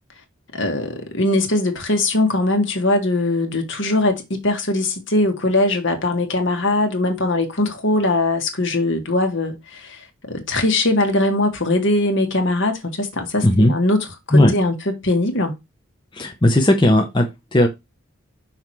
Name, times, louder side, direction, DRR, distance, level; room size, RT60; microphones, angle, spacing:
voice 1, 0.5-10.0 10.3-15.5, left 2 dB, 60° left, 1.6 m, -21 dB
voice 2, 16.2-17.7, left 1 dB, 20° left, 0.8 m, -16 dB
5.8 x 4.4 x 4.7 m
head